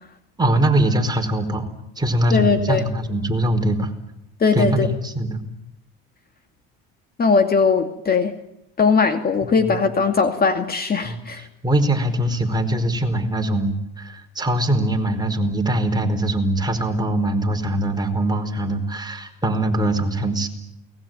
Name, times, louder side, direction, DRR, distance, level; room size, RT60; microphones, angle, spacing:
voice 1, 0.4-1.7 2.0-3.9 4.5-5.4 9.6-9.8 11.0-11.2 11.6-20.5, right 1 dB, 15° right, 5 dB, 4.8 m, -22 dB
voice 2, 2.3-2.9 4.4-4.9 7.2-8.3 8.8-11.4, left 5 dB, 30° left, 6 dB, 2.4 m, -19 dB
29.0 x 20.5 x 9.3 m, 0.85 s
supercardioid pair, 100°, 31 cm